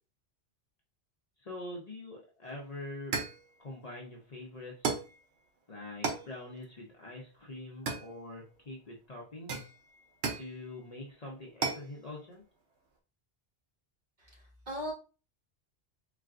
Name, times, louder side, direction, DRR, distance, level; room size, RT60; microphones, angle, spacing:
voice 1, 1.4-3.2 3.6-4.9 5.7-9.6 10.3-12.4, left 2 dB, 40° left, -2 dB, 0.7 m, -44 dB
sound 1, 2.4-2.6 3.1-3.5 4.8-5.2 6.0-6.3 7.9-8.5 9.5-10.5 11.6-11.9, right 4 dB, 75° right, 0.9 m, -34 dB
voice 2, 14.2-14.9, equal, 45° right, -3 dB, 1.2 m, -39 dB
4.0 x 2.2 x 2.4 m, 0.34 s
omnidirectional pair, 1.1 m